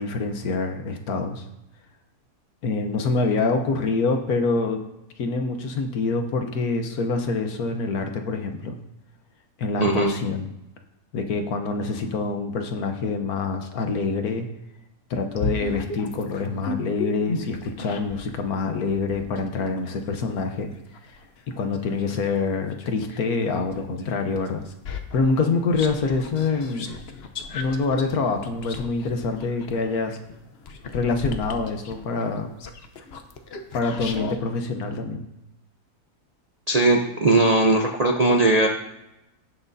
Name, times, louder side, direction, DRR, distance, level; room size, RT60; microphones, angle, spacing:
voice 1, 0.0-1.4 2.6-4.8 5.2-8.8 9.6-10.5 11.1-14.5 15.1-20.7 21.1-21.2 21.5-24.6 25.1-27.0 27.5-30.2 30.9-32.5 33.7-35.2, left 4 dB, 65° left, 5 dB, 1.3 m, -26 dB
voice 2, 9.8-10.1 36.7-38.7, right 2 dB, 50° right, 1 dB, 0.4 m, -19 dB
sound 1, 15.3-18.3 18.9-23.2 23.7-34.4, left 3 dB, 50° left, 0.8 m, -35 dB
17.0 x 6.0 x 2.7 m, 0.90 s
omnidirectional pair, 1.7 m